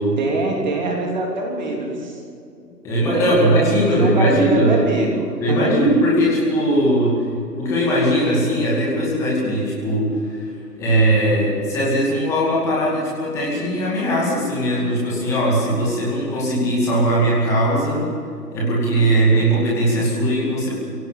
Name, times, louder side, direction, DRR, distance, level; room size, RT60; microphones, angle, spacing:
voice 1, 0.2-2.2 3.1-5.8, right 2 dB, 25° right, 1 dB, 3.4 m, -24 dB
voice 2, 2.8-4.8 5.4-7.2 7.5-10.5 10.8-18.1 18.5-20.7, right 1 dB, 5° left, -5 dB, 2.4 m, -19 dB
23.0 x 17.0 x 6.9 m, 2.5 s
figure-of-eight pair, 155°, 50 cm